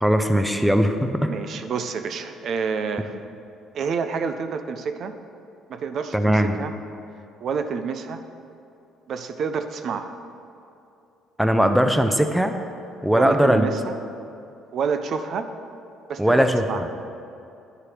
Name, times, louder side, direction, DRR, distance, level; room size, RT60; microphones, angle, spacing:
voice 1, 0.0-1.3 6.1-6.5 11.4-12.5 13.0-13.7 16.2-16.9, equal, 5° right, 7 dB, 0.5 m, -19 dB
voice 2, 1.2-3.1 3.7-5.1 5.7-6.7 7.4-8.2 9.1-10.1 13.1-13.9 14.7-15.5 16.1-16.8, right 5 dB, 55° right, 8 dB, 0.4 m, -28 dB
10.0 x 4.6 x 4.9 m, 2.7 s
cardioid pair, 90°, 0 cm